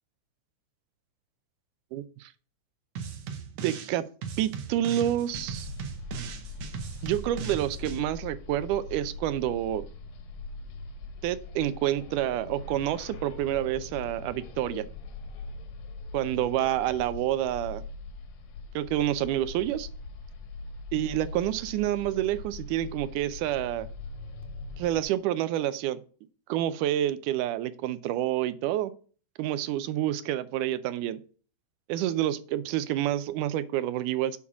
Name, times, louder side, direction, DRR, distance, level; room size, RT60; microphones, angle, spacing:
voice 1, 1.9-2.3 3.6-4.1 4.4-5.7 7.0-9.8 11.2-14.8 16.1-17.8 18.8-19.9 20.9-23.9 24.8-26.0 26.5-28.9 29.4-31.2 31.9-34.4, right 12 dB, 90° right, 15 dB, 2.1 m, -28 dB
sound 1, 3.0-3.9 4.2-8.0, right 6 dB, 65° right, 1.9 m, -38 dB
sound 2, 5.3-25.0, left 3 dB, 90° left, 2.5 m, -41 dB
7.0 x 4.7 x 6.0 m, 0.40 s
omnidirectional pair, 3.5 m